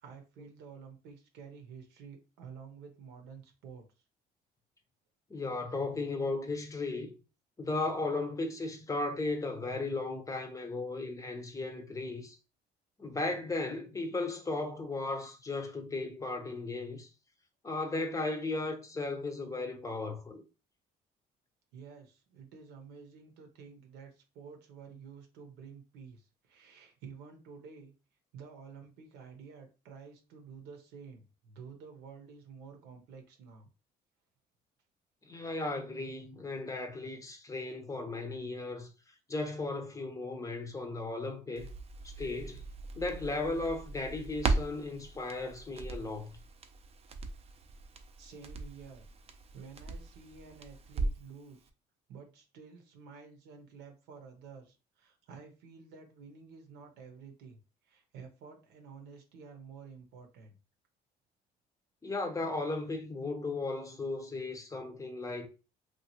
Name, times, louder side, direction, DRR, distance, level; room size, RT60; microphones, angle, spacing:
voice 1, 0.0-3.8 21.7-27.9 28.3-33.7 48.2-49.0 49.5-51.6 52.1-57.6 57.8-60.6, right 6 dB, 90° right, 0.8 m, -51 dB
voice 2, 5.3-7.1 7.6-12.4 13.0-17.1 17.6-20.4 35.2-38.9 39.3-41.7 42.0-42.6 43.0-46.3 62.0-65.5, left 3 dB, 20° left, 0.6 m, -36 dB
Crackle, 41.6-51.4 51.7-51.8, right 3 dB, 35° right, 0.4 m, -38 dB
2.8 x 2.4 x 2.8 m
cardioid pair, 110°, 17 cm